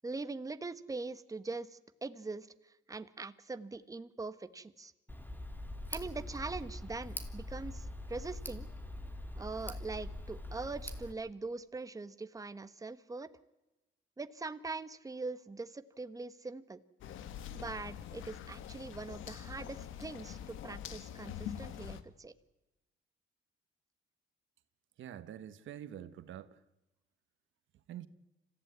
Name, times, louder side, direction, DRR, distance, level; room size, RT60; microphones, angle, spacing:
voice 1, 0.0-4.9 5.9-8.7 9.4-13.3 14.2-16.8 17.5-22.3, right 3 dB, 15° right, 1.1 m, -42 dB
Tick, 5.1-11.1, left 1 dB, 10° left, 2.5 m, -43 dB
sound 1, 17.0-22.0, left 9 dB, 85° left, 1.5 m, -44 dB
voice 2, 25.0-26.6 27.9-28.1, right 10 dB, 75° right, 1.3 m, -46 dB
25.5 x 15.0 x 9.5 m
cardioid pair, 90°, 20 cm